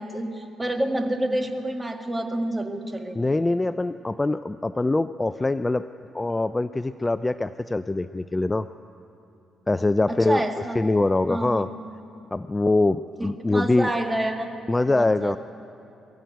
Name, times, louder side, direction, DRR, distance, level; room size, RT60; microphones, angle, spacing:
voice 1, 0.0-3.4 10.1-10.8 11.3-11.7 13.2-14.5 14.9-15.4, right 1 dB, 15° right, 5 dB, 1.8 m, -28 dB
voice 2, 3.2-5.9 6.1-8.7 9.7-10.4 10.8-11.7 12.3-13.9 14.7-15.4, left 2 dB, 15° left, 12 dB, 0.4 m, -23 dB
22.5 x 14.5 x 9.1 m, 2.8 s
cardioid pair, 90°, 0 cm